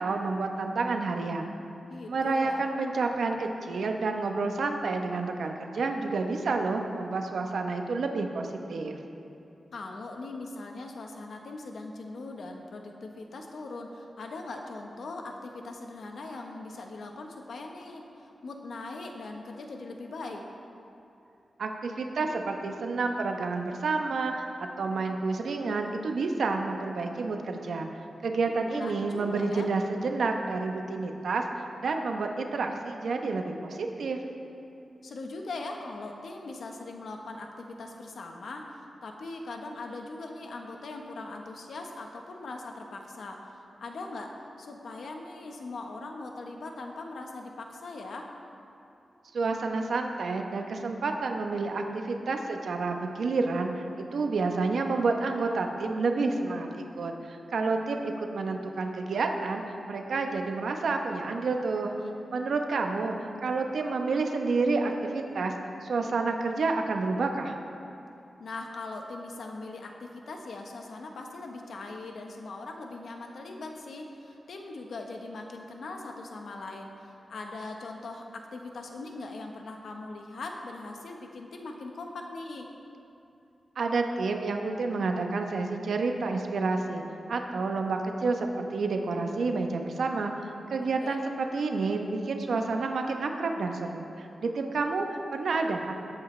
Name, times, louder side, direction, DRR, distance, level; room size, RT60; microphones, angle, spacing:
voice 1, 0.0-1.5 2.1-9.0 21.6-27.9 28.2-34.2 49.3-53.7 54.0-59.6 59.9-61.9 62.3-65.5 65.8-67.5 83.8-87.0 87.3-90.3 90.7-95.9, right 3 dB, 80° right, 4 dB, 0.9 m, -29 dB
voice 2, 1.9-2.6 9.7-20.4 28.5-29.7 35.0-48.3 61.9-62.1 68.4-82.7 91.0-91.2, left 3 dB, 75° left, 2 dB, 1.1 m, -40 dB
18.5 x 8.4 x 3.3 m, 2.7 s
wide cardioid pair, 100°, 0 cm